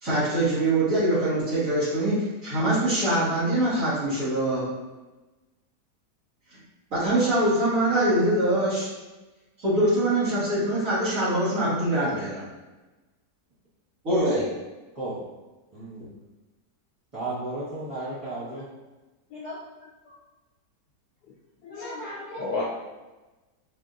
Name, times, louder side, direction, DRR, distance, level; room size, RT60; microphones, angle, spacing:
voice 1, 0.0-4.7 6.9-8.9 9.6-12.4 14.0-14.5, right 1 dB, 50° right, -11 dB, 1.9 m, -23 dB
voice 2, 15.7-16.1 17.1-18.7, right 2 dB, 20° right, -14 dB, 1.1 m, -33 dB
voice 3, 21.6-22.6, left 3 dB, 75° left, -6 dB, 1.2 m, -33 dB
4.9 x 2.7 x 2.5 m, 1.1 s
omnidirectional pair, 1.8 m